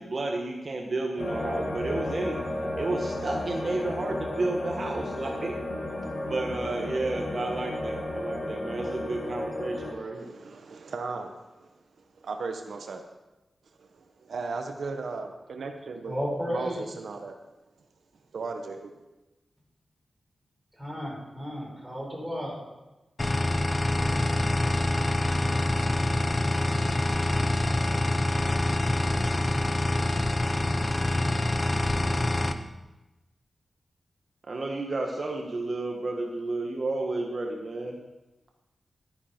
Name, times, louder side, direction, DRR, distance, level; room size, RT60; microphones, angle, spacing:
voice 1, 0.0-2.4 2.8-5.6 6.1-10.4 34.5-38.0, right 2 dB, 50° right, 1 dB, 1.3 m, -31 dB
sound 1, 1.2-9.9, left 1 dB, 55° left, 2.2 m, -33 dB
voice 2, 9.8-11.7 12.2-13.0 13.8-16.2 16.5-17.4 18.3-18.9, right 4 dB, 85° right, 5 dB, 0.9 m, -36 dB
voice 3, 16.1-16.8 20.7-22.6, equal, ahead, -3 dB, 4.6 m, -33 dB
sound 2, 23.2-32.5, left 1 dB, 30° left, 0.8 m, -26 dB
12.5 x 9.8 x 4.4 m, 1.1 s
wide cardioid pair, 85°, 0 cm